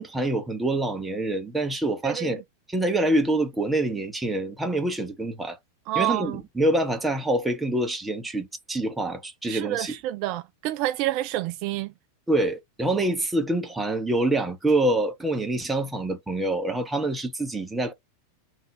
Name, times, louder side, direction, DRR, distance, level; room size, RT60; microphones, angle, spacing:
voice 1, 0.0-2.4 2.7-5.6 5.9-9.9 12.3-17.9, right 1 dB, 10° right, 1.1 m, -26 dB
voice 2, 2.0-2.4 5.9-6.4 9.4-11.9, right 14 dB, 45° right, 0.3 m, -28 dB
3.8 x 2.7 x 3.7 m
figure-of-eight pair, 90°, 0 cm